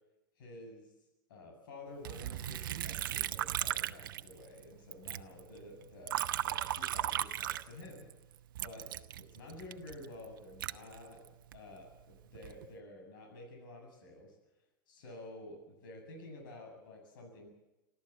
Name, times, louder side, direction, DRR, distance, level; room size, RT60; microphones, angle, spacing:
voice 1, 0.4-0.9 1.3-8.1 8.6-14.4 14.9-17.5, left 2 dB, 70° left, 3 dB, 7.7 m, -51 dB
Liquid, 2.0-4.6 4.9-8.1 8.5-11.6 12.1-12.7, right 12 dB, 75° right, 1.0 m, -37 dB
27.0 x 14.0 x 8.3 m, 1.0 s
hypercardioid pair, 110°, 11 cm